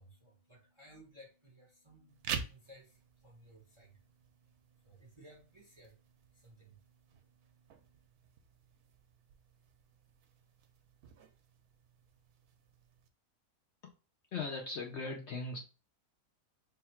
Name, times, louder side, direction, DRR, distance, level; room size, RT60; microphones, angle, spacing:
voice 1, 0.0-8.1, equal, 25° right, -2 dB, 0.7 m, -60 dB
sound 1, 2.1-13.1, right 7 dB, 85° right, 1.1 m, -48 dB
voice 2, 14.3-15.6, left 3 dB, 60° left, 1 dB, 0.8 m, -39 dB
3.4 x 2.3 x 4.3 m, 0.34 s
omnidirectional pair, 1.6 m